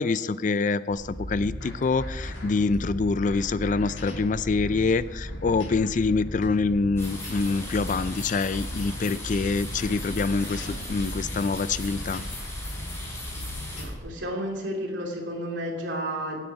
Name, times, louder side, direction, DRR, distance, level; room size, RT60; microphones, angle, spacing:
voice 1, 0.0-12.2, left 4 dB, 40° left, 16 dB, 0.4 m, -26 dB
sound 1, 0.9-14.0, equal, 85° left, 3.1 m, -36 dB
sound 2, 7.0-13.8, left 2 dB, 15° left, 4.4 m, -39 dB
voice 2, 13.8-16.4, equal, 75° right, 0 dB, 3.0 m, -32 dB
17.0 x 9.1 x 4.7 m, 1.2 s
head